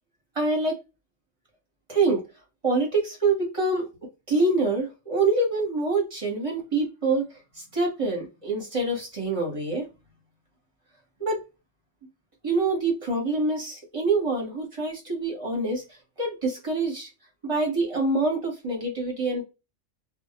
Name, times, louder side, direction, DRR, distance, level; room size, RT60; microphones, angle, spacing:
voice 1, 0.3-0.8 1.9-2.3 2.6-3.9 4.3-7.3 7.5-9.9 11.2-11.4 12.4-15.8 16.2-17.1 17.4-19.4, right 3 dB, 30° right, 0 dB, 0.8 m, -25 dB
2.2 x 2.0 x 2.7 m, 0.26 s
omnidirectional pair, 1.4 m